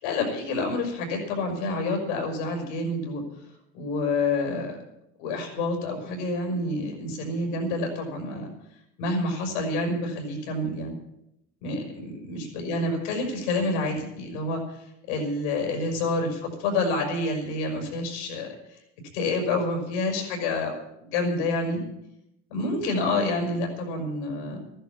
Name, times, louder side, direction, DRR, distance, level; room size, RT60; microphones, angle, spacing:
voice 1, 0.0-3.2 3.7-4.8 5.2-8.5 9.0-10.9 11.6-18.8 19.1-20.7 21.0-21.8 22.5-24.6, left 2 dB, 80° left, 2 dB, 6.0 m, -28 dB
14.5 x 11.5 x 7.1 m, 0.81 s
supercardioid pair, 120°, 34 cm